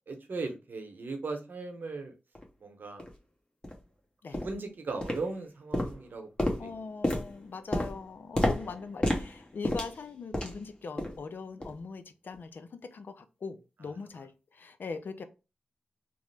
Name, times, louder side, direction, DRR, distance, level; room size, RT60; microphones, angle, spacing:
voice 1, 0.1-2.1 2.6-3.0 4.4-6.3 6.6-6.7, right 3 dB, 70° right, 5 dB, 0.8 m, -37 dB
sound 1, 2.3-2.4 3.0-3.1 3.6-3.8 4.3-4.6 5.0-5.5 5.7-10.7 11.0-11.3 11.6-11.8 12.3-12.4, left 1 dB, 30° left, 1.0 m, -32 dB
voice 2, 6.6-15.2, left 4 dB, 70° left, 10 dB, 0.4 m, -41 dB
2.9 x 2.0 x 3.2 m, 0.29 s
cardioid pair, 40°, 3 cm